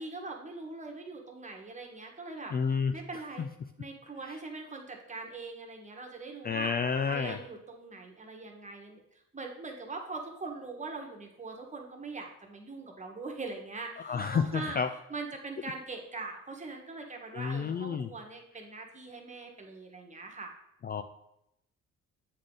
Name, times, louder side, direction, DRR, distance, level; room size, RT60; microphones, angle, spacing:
voice 1, 0.0-2.5 2.9-3.5 3.8-6.7 7.1-9.0 9.3-14.8 15.1-20.5, right 3 dB, 25° right, 2 dB, 1.3 m, -42 dB
voice 2, 2.5-2.9 3.4-3.5 6.4-7.4 14.0-14.9 17.3-18.1 20.8-21.0, left 6 dB, 30° left, 8 dB, 0.4 m, -30 dB
8.0 x 3.8 x 3.8 m, 0.80 s
cardioid pair, 90°, 30 cm